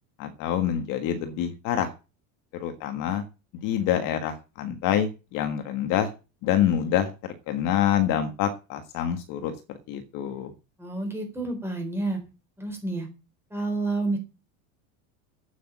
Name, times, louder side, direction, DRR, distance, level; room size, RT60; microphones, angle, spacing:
voice 1, 0.2-1.9 2.6-3.2 3.6-6.1 6.4-7.1 7.5-9.5 9.9-10.5, left 10 dB, 45° left, 7 dB, 1.6 m, -26 dB
voice 2, 10.8-12.2 12.6-13.1 13.5-14.2, right 2 dB, 5° right, 2 dB, 4.2 m, -29 dB
8.7 x 8.4 x 8.6 m, 0.31 s
cardioid pair, 165°, 45 cm